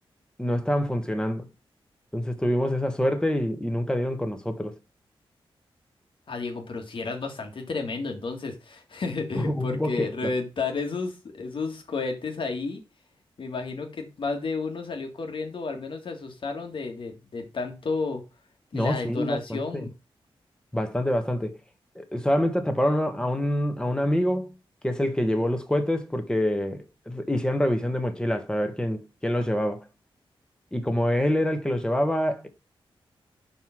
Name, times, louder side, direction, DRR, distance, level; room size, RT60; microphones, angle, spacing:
voice 1, 0.4-1.5 2.1-4.7 9.4-10.1 18.7-19.9 20.7-21.5 21.9-24.5 24.8-29.8 30.7-32.5, equal, 10° left, 1.4 m, -26 dB
voice 2, 6.3-12.8 13.4-18.2 18.7-19.9, left 4 dB, 60° left, 2.0 m, -32 dB
5.5 x 4.7 x 5.9 m
cardioid pair, 85°, 10 cm